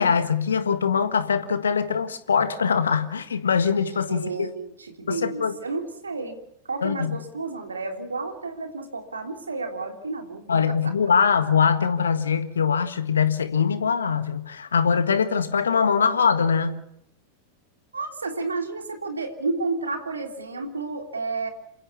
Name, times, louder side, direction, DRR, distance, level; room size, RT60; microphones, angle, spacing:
voice 1, 0.0-4.5 5.1-5.6 6.8-7.2 10.5-16.8, left 6 dB, 70° left, 11 dB, 1.6 m, -22 dB
voice 2, 4.1-6.4 6.7-10.8 17.9-21.5, right 3 dB, 75° right, 4 dB, 3.2 m, -31 dB
28.0 x 15.5 x 7.2 m, 0.81 s
figure-of-eight pair, 90°, 0 cm